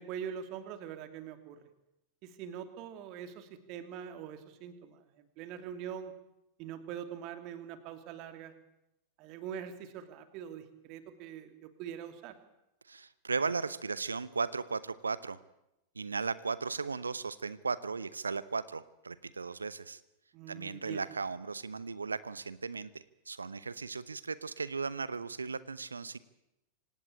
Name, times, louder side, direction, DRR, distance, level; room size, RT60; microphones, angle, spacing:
voice 1, 0.0-1.6 2.2-6.1 6.6-8.5 9.2-12.4 20.3-21.0, right 8 dB, 40° right, 9 dB, 2.9 m, -43 dB
voice 2, 12.9-15.4 15.9-20.0 20.5-26.2, right 4 dB, 75° right, 18 dB, 0.9 m, -36 dB
25.5 x 18.0 x 8.8 m, 0.87 s
figure-of-eight pair, 90°, 0 cm